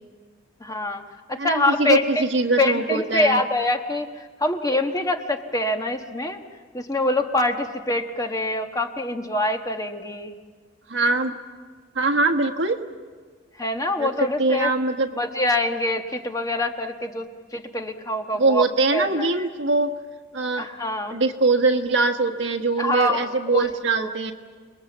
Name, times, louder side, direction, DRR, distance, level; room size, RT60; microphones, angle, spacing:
voice 1, 0.6-2.3 2.6-6.4 6.7-10.4 13.6-14.7 15.2-18.7 18.9-19.5 20.6-21.2 22.8-24.1, left 2 dB, 20° left, 5 dB, 1.3 m, -25 dB
voice 2, 1.4-3.4 10.9-11.3 11.9-12.8 14.0-14.1 14.4-15.1 18.4-19.9 20.3-20.7 21.1-24.3, right 3 dB, 65° right, 6 dB, 1.5 m, -22 dB
29.0 x 21.0 x 7.3 m, 1.5 s
head